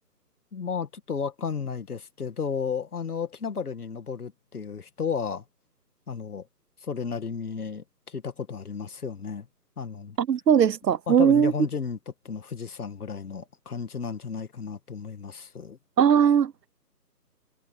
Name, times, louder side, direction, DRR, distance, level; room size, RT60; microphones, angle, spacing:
voice 1, 0.5-5.4 6.1-6.5 6.8-9.5 9.8-10.2 11.1-12.0 12.2-15.8, left 6 dB, 65° left, 2.2 m, -33 dB
voice 2, 10.2-11.5 16.0-16.5, right 8 dB, 75° right, 0.8 m, -19 dB
hypercardioid pair, 170°, 49 cm